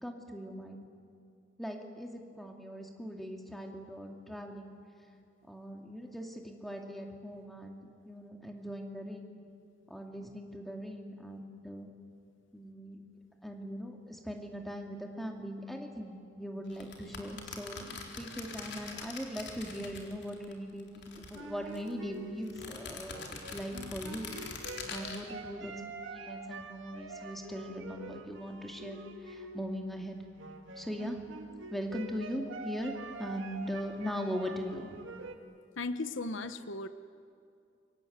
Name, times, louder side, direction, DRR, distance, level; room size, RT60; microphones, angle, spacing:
voice 1, 0.0-0.8 1.6-4.8 5.4-9.3 9.9-11.9 12.5-13.0 13.4-24.3 24.9-25.7 26.1-30.2 30.8-31.2 31.7-32.9 33.2-35.0, equal, ahead, 2 dB, 2.6 m, -40 dB
sound 1, 16.7-20.5 20.8-21.9 22.4-25.2, left 4 dB, 60° left, 3.7 m, -44 dB
sound 2, 21.3-30.0 30.4-35.4, right 2 dB, 70° right, 2.0 m, -46 dB
voice 2, 35.8-36.9, left 3 dB, 75° left, 11 dB, 1.0 m, -36 dB
28.5 x 24.5 x 8.1 m, 2.4 s
head